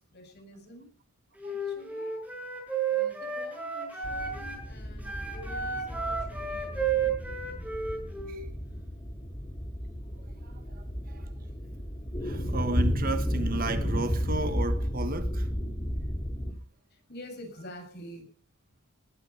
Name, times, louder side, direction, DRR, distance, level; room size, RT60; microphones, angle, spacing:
voice 1, 0.1-0.9 1.4-2.1 2.9-7.6 16.9-18.2, left 1 dB, 45° left, 7.3 m, -48 dB
Wind instrument woodwind instrument, 1.4-4.6 5.0-8.4, right 5 dB, 5° right, 6.8 m, -32 dB
sound 1, 4.0-16.5, equal, 20° left, 3.5 m, -33 dB
voice 2, 12.2-15.5, right 2 dB, 40° right, 1.4 m, -33 dB
20.5 x 12.0 x 5.7 m
head